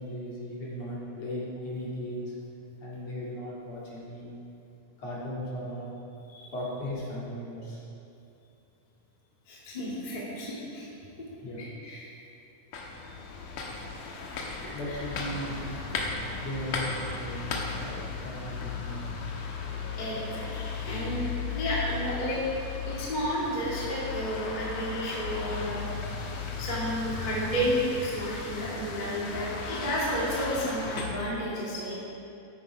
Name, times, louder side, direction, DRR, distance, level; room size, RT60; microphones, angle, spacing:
voice 1, 0.0-2.3 2.8-4.4 5.0-5.9 6.5-7.8 11.4-11.7 14.7-15.6 16.4-19.2, equal, 45° left, -7 dB, 2.9 m, -37 dB
voice 2, 9.5-10.9 11.6-12.1 14.9-15.0 20.0-22.4 22.9-32.0, equal, 15° left, -7 dB, 1.5 m, -32 dB
sound 1, 12.7-31.1, left 5 dB, 65° left, 2.3 m, -36 dB
13.0 x 9.6 x 4.8 m, 2.7 s
omnidirectional pair, 4.7 m